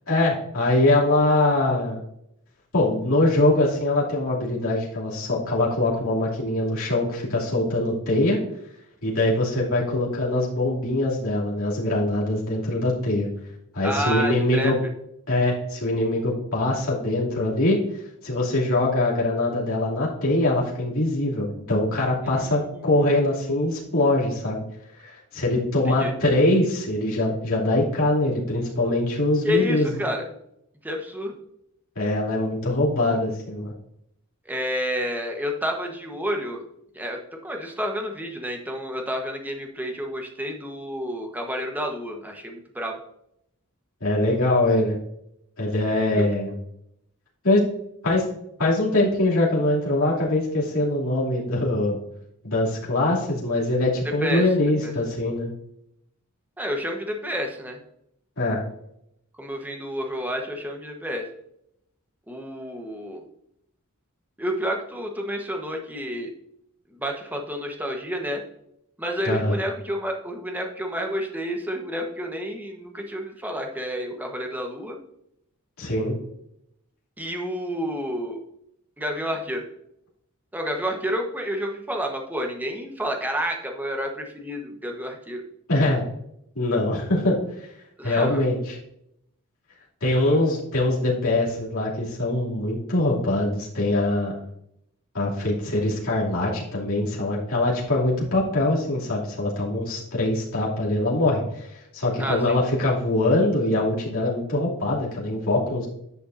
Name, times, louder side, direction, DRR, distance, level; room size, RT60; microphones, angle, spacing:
voice 1, 0.1-2.0 2.7-8.4 9.0-13.3 13.7-14.8 15.3-17.8 18.2-24.6 25.0-29.9 31.9-33.7 44.0-45.0 45.6-46.5 47.4-47.6 48.0-48.2 48.6-52.0 52.4-55.5 58.4-58.6 69.2-69.6 75.8-76.2 85.7-86.0 86.5-87.7 88.0-88.7 90.0-94.3 95.1-105.9, left 1 dB, 65° left, -5 dB, 2.8 m, -23 dB
voice 2, 13.8-14.7 22.2-22.9 25.8-26.1 29.4-30.2 30.8-31.3 34.5-36.6 36.9-43.0 46.1-46.2 54.2-54.5 54.8-54.9 56.6-57.8 59.4-61.3 62.3-63.2 64.4-66.3 66.9-68.4 69.0-75.0 77.2-78.4 79.0-79.6 80.5-85.4 88.0-88.4 102.2-102.6, equal, 10° right, 2 dB, 1.2 m, -30 dB
10.5 x 6.7 x 2.7 m, 0.76 s
head